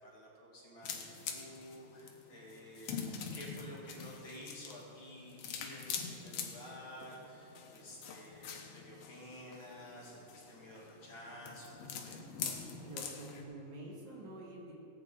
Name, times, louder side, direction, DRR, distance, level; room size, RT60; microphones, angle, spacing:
voice 1, 0.0-12.2, equal, 45° left, -4 dB, 2.4 m, -51 dB
sound 1, 0.8-13.4, left 6 dB, 65° left, 1.9 m, -45 dB
voice 2, 12.8-14.7, right 1 dB, 75° right, -3 dB, 3.6 m, -47 dB
17.5 x 9.3 x 3.9 m, 3.0 s
omnidirectional pair, 3.4 m